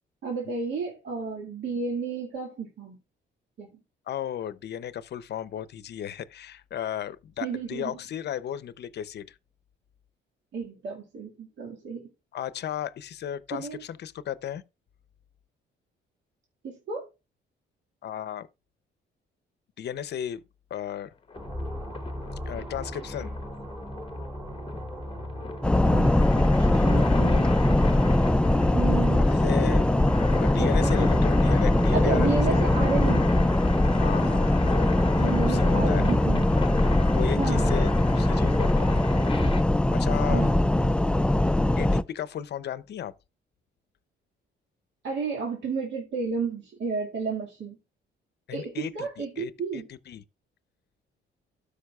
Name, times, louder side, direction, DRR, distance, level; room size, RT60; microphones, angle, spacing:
voice 1, 0.2-3.0 3.6-3.8 7.4-8.0 10.5-12.1 13.5-13.8 16.6-17.1 25.8-27.5 28.7-29.2 30.6-31.1 31.9-33.3 35.2-36.5 37.4-37.9 40.3-40.6 45.0-47.8 48.5-49.9, right 4 dB, 65° right, 2.1 m, -32 dB
voice 2, 4.1-9.3 12.3-14.6 18.0-18.5 19.8-20.4 20.7-21.1 22.5-23.3 29.3-29.9 30.3-32.6 34.0-34.7 35.2-36.0 37.1-38.9 39.9-40.5 41.8-43.1 48.5-49.1 49.4-50.2, left 10 dB, 60° left, 0.6 m, -35 dB
sound 1, 21.3-39.6, left 5 dB, 25° left, 0.9 m, -37 dB
sound 2, 21.3-37.5, equal, 10° right, 2.6 m, -37 dB
sound 3, 25.6-42.0, left 1 dB, 5° left, 0.3 m, -22 dB
13.0 x 5.1 x 2.4 m
cardioid pair, 90°, 20 cm